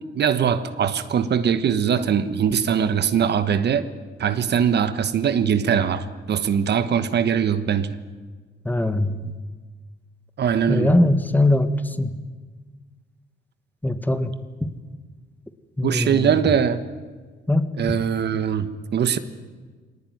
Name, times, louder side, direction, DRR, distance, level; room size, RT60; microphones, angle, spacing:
voice 1, 0.1-3.9 4.2-8.0 10.4-10.9 15.8-16.8 17.8-19.2, right 8 dB, 60° right, 12 dB, 1.3 m, -21 dB
voice 2, 8.6-9.2 10.7-11.7 12.0-12.1 13.8-14.3 14.6-14.7 15.8-16.3 17.5-18.0, left 1 dB, 10° left, 10 dB, 1.5 m, -21 dB
21.0 x 18.5 x 9.4 m, 1.5 s
cardioid pair, 90°, 20 cm